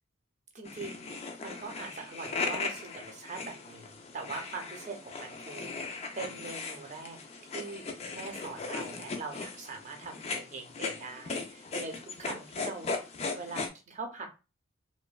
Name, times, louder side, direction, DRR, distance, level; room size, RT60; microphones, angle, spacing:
voice 1, 0.5-7.8 8.1-13.0 13.3-14.3, right 3 dB, 35° right, 3 dB, 0.6 m, -42 dB
sound 1, 0.6-13.7, left 4 dB, 30° left, 0.3 m, -38 dB
3.0 x 2.1 x 2.3 m, 0.29 s
head